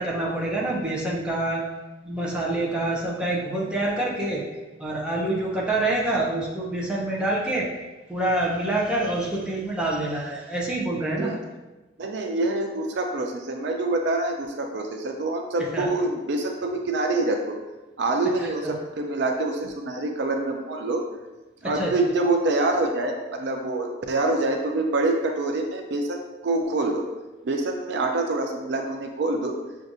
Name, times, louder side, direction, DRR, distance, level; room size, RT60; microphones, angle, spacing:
voice 1, 0.0-1.6 2.0-4.4 4.8-7.7 8.1-11.3 15.7-15.9 18.4-18.7 21.6-21.9, right 2 dB, 5° right, -5 dB, 0.7 m, -26 dB
voice 2, 12.0-17.6 18.0-21.0 21.6-27.1 27.4-29.6, right 2 dB, 65° right, 3 dB, 0.4 m, -26 dB
6.1 x 2.5 x 2.6 m, 1.1 s
head